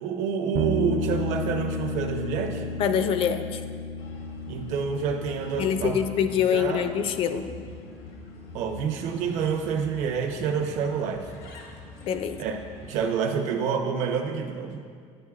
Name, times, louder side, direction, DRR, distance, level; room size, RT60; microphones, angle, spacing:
voice 1, 0.0-2.7 4.5-6.0 6.5-6.9 8.5-11.3 12.4-14.9, right 6 dB, 70° right, 4 dB, 0.8 m, -28 dB
sound 1, 0.5-10.0, left 1 dB, 45° right, 0.5 m, -34 dB
voice 2, 2.8-3.6 5.6-7.5 12.0-12.4, left 8 dB, 50° left, 9 dB, 0.4 m, -25 dB
Bird, 4.0-13.0, left 2 dB, 85° left, 1.2 m, -45 dB
9.4 x 9.0 x 2.4 m, 2.1 s
cardioid pair, 155°, 12 cm